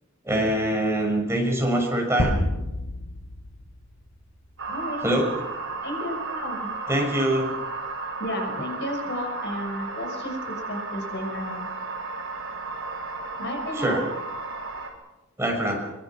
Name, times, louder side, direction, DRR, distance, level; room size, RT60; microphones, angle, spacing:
voice 1, 0.2-2.4 5.0-5.3 6.9-7.6 13.8-14.0 15.4-15.8, right 1 dB, 15° right, 0 dB, 6.3 m, -24 dB
sound 1, 2.2-4.2, left 1 dB, 75° left, 7.1 m, -28 dB
sound 2, 4.6-14.9, right 3 dB, 70° right, 5.3 m, -34 dB
voice 2, 4.7-5.1 5.8-6.7 8.2-11.7 13.4-14.0, left 1 dB, 60° left, 4 dB, 5.9 m, -32 dB
24.0 x 23.5 x 6.1 m, 0.96 s
head